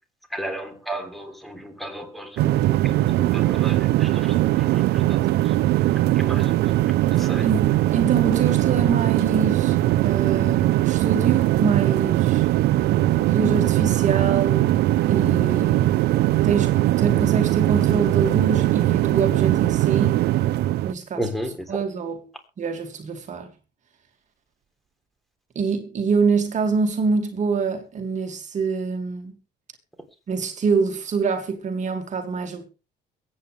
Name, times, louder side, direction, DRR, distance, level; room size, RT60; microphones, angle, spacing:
voice 1, 0.3-5.5 6.1-6.7 7.1-7.5 21.2-21.8, right 1 dB, ahead, 3.4 m, -34 dB
sound 1, 2.4-20.9, right 15 dB, 80° right, 0.6 m, -20 dB
voice 2, 7.4-9.8 10.0-12.5 13.2-14.7 15.1-15.9 16.4-20.2 20.8-21.2 21.7-22.2 22.6-23.5 25.6-29.3 30.3-32.6, right 5 dB, 45° right, 2.3 m, -25 dB
22.5 x 8.9 x 3.4 m
cardioid pair, 110°, 17 cm